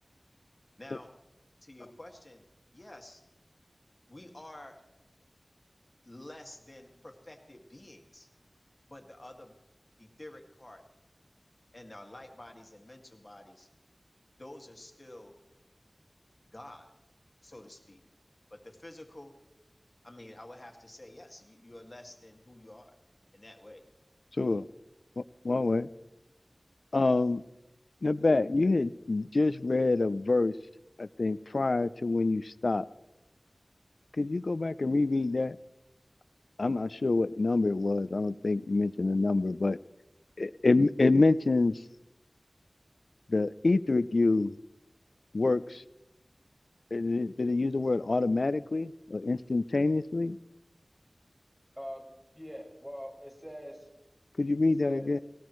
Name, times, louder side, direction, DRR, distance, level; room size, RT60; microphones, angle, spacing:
voice 1, 0.8-1.2 1.6-2.5 2.7-3.2 4.1-4.8 6.0-8.3 8.9-9.6 10.0-10.8 11.7-13.7 14.4-15.4 16.5-16.9 17.4-18.0 18.5-19.4 20.0-23.0 23.3-23.8, left 1 dB, 35° left, 3 dB, 2.0 m, -49 dB
voice 2, 25.2-25.9 26.9-27.4 28.0-30.5 31.0-32.9 34.2-35.6 36.6-39.8 40.4-41.8 43.3-44.6 45.3-45.8 46.9-50.4 54.4-55.2, left 3 dB, 75° left, 15 dB, 0.4 m, -26 dB
voice 3, 51.7-52.1 52.3-53.9 54.6-55.1, equal, 15° right, -2 dB, 5.3 m, -42 dB
19.5 x 18.5 x 3.2 m, 0.95 s
wide cardioid pair, 50°, 0 cm